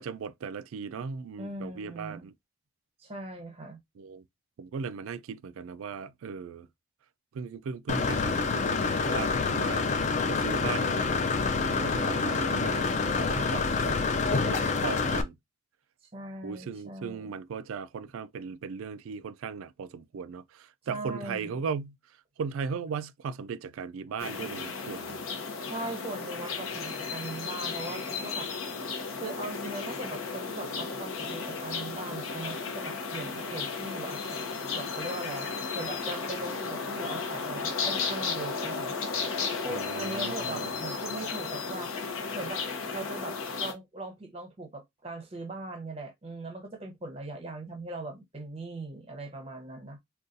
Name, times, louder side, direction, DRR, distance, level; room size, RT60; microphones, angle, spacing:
voice 1, 0.0-2.3 4.0-4.2 4.6-6.7 7.3-15.3 16.4-22.0 22.4-25.2 39.7-40.8, right 6 dB, 80° right, 0.3 m, -37 dB
voice 2, 1.4-2.3 3.0-3.8 16.1-17.3 20.9-21.6 25.7-28.5 29.2-38.9 39.6-41.9 42.3-50.0, right 2 dB, 30° right, 0.7 m, -40 dB
Engine / Mechanisms, 7.9-15.2, left 4 dB, 35° left, 0.3 m, -27 dB
sound 1, 24.2-43.7, left 4 dB, 80° left, 0.8 m, -34 dB
3.8 x 2.3 x 2.5 m
head